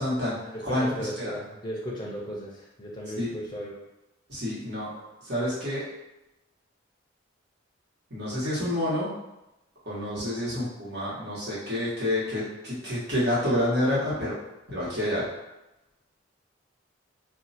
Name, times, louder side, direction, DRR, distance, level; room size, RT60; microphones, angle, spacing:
voice 1, 0.0-1.3 3.2-3.3 4.3-4.9 5.2-5.8 8.1-9.1 9.8-14.3 14.7-15.3, left 1 dB, 60° right, -8 dB, 1.4 m, -28 dB
voice 2, 0.5-3.8, equal, 25° left, -2 dB, 0.6 m, -36 dB
2.8 x 2.3 x 4.1 m, 0.94 s
head